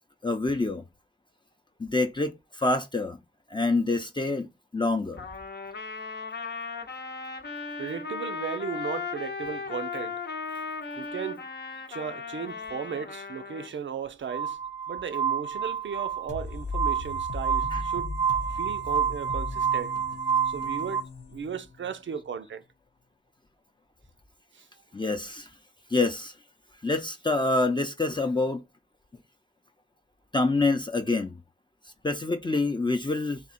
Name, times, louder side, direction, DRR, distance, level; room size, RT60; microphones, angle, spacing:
voice 1, 0.2-0.8 1.8-3.2 3.5-4.5 4.7-5.3 17.7-17.8 24.9-25.5 25.9-26.3 26.8-28.6 30.3-31.4 32.0-33.4, left 3 dB, 25° left, 0.5 m, -26 dB
Trumpet, 5.2-13.7, left 4 dB, 65° left, 0.7 m, -36 dB
voice 2, 7.8-10.2 11.0-11.5 11.9-14.6 14.9-18.1 18.5-20.0 20.5-22.6 24.5-24.7, right 7 dB, 85° right, 0.5 m, -36 dB
Glass, 14.3-21.0, right 7 dB, 25° right, 0.6 m, -29 dB
sound 1, 16.3-21.9, left 3 dB, 90° left, 0.8 m, -37 dB
3.5 x 2.8 x 4.1 m
wide cardioid pair, 80°, 19 cm